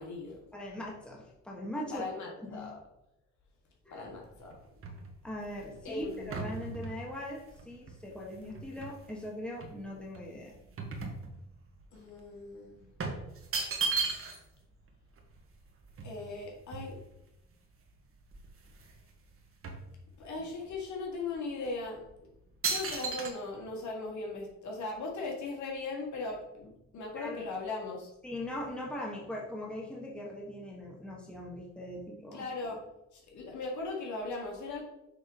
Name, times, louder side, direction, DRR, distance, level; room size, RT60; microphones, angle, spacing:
voice 1, 0.0-0.4 1.9-2.7 3.9-4.6 5.8-6.5 11.9-12.9 16.0-17.0 20.2-22.3 22.7-28.1 32.3-32.8 33.1-34.8, left 3 dB, 75° left, -1 dB, 1.9 m, -38 dB
voice 2, 0.5-2.1 2.4-2.7 3.8-4.1 5.2-10.5 27.1-27.4 28.2-32.4, left 1 dB, 5° left, -3 dB, 1.4 m, -40 dB
sound 1, 4.1-9.2 9.6-11.8 12.1-12.3 13.0-14.6 14.9-15.0 15.2-17.3 17.9-18.0 18.2-19.0 19.3-20.5 21.1-21.2 21.9-22.1 22.6-23.3, right 4 dB, 45° right, 1.6 m, -37 dB
6.7 x 3.6 x 5.2 m, 0.87 s
cardioid pair, 90°, 30 cm